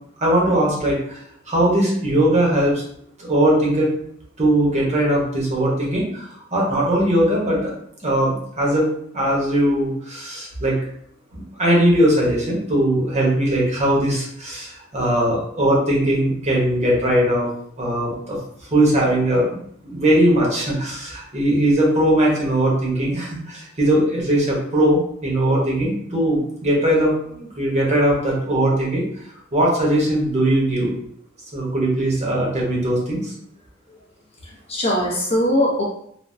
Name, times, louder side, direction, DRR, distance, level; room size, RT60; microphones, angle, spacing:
voice 1, 0.2-2.8 3.2-3.9 4.4-7.7 8.0-10.8 11.3-17.5 17.8-18.4 18.7-19.6 19.8-29.0 29.5-30.9 31.5-33.3, right 1 dB, 35° right, -4 dB, 0.9 m, -20 dB
voice 2, 34.4-35.8, equal, 30° left, -3 dB, 0.6 m, -21 dB
3.4 x 2.1 x 2.6 m, 0.67 s
head